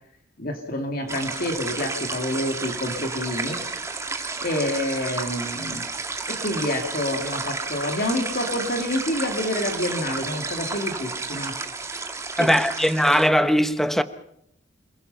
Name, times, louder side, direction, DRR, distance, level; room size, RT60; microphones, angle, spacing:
voice 1, 0.4-3.6 4.4-5.8 6.3-11.6 12.4-12.5, left 1 dB, 50° left, 2.7 m, -28 dB
sound 1, 1.1-13.3, right 3 dB, 15° right, 1.7 m, -32 dB
voice 2, 12.4-14.0, equal, ahead, 1.0 m, -19 dB
27.5 x 21.0 x 5.7 m
head